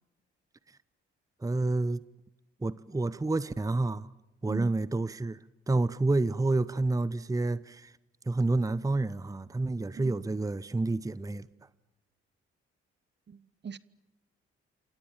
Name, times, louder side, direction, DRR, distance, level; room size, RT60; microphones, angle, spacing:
voice 1, 1.4-2.0 2.6-4.1 4.4-5.4 5.7-7.9 8.3-11.5, right 2 dB, 10° right, 0.9 m, -29 dB
voice 2, 13.3-13.8, right 7 dB, 35° right, 1.1 m, -39 dB
29.0 x 27.5 x 7.4 m
figure-of-eight pair, 40°, 32 cm